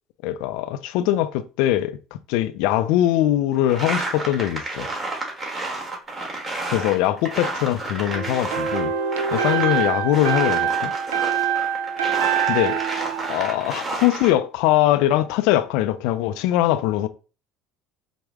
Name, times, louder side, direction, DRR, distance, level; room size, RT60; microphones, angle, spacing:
voice 1, 0.2-2.0 2.3-4.9 6.7-8.9 9.3-10.9 12.5-12.8 13.3-17.1, left 13 dB, 75° left, 0.3 m, -21 dB
sound 1, 3.7-8.9 9.1-14.3, right 2 dB, 25° right, 1.5 m, -31 dB
sound 2, 8.1-14.1, right 8 dB, 85° right, 0.5 m, -25 dB
4.5 x 2.1 x 3.5 m
hypercardioid pair, 70°, 0 cm